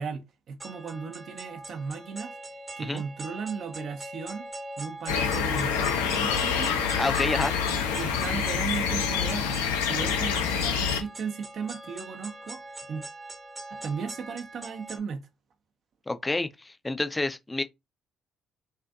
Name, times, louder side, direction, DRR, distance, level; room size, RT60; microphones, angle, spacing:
voice 1, 0.0-2.4 2.8-4.5 4.8-6.8 7.7-9.6 9.9-12.6 12.9-13.0 13.7-15.2, right 5 dB, 55° right, 0.6 m, -36 dB
sound 1, 0.6-15.0, right 2 dB, 25° right, 0.8 m, -42 dB
sound 2, 5.1-11.0, left 7 dB, 85° left, 0.4 m, -27 dB
voice 2, 7.0-7.5 16.1-17.6, left 2 dB, 20° left, 0.4 m, -29 dB
2.5 x 2.4 x 2.3 m
hypercardioid pair, 50°, 0 cm